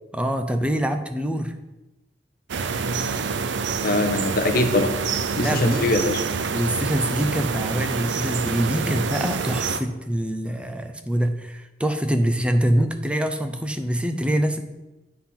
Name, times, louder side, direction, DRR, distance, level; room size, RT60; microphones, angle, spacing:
voice 1, 0.1-1.5 5.4-5.8 6.4-14.6, equal, 5° right, 7 dB, 0.5 m, -24 dB
sound 1, 2.5-9.8, right 5 dB, 90° right, 0.5 m, -27 dB
voice 2, 3.8-5.0 5.4-6.2, left 2 dB, 55° left, 7 dB, 0.8 m, -22 dB
8.4 x 3.9 x 5.8 m, 1.0 s
head